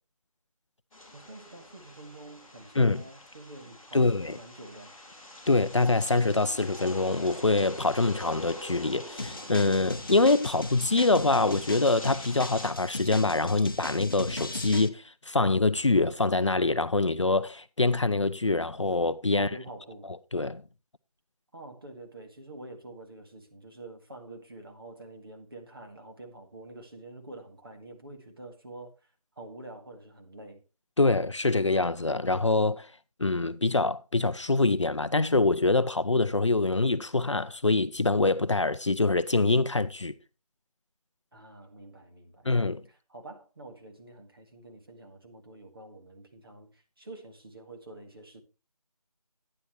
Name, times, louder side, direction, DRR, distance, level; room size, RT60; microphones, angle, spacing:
sound 1, 0.9-12.7, left 1 dB, 5° left, 1.4 m, -45 dB
voice 1, 1.1-4.9 19.3-20.1 21.5-30.6 41.3-42.5 42.9-48.4, right 2 dB, 40° right, 1.8 m, -47 dB
voice 2, 3.9-4.4 5.5-19.5 20.3-20.6 31.0-32.9 33.2-40.1 42.5-42.8, left 3 dB, 50° left, 0.5 m, -25 dB
sound 2, 9.2-14.9, left 2 dB, 35° left, 0.9 m, -38 dB
11.0 x 9.7 x 3.1 m
figure-of-eight pair, 170°, 19 cm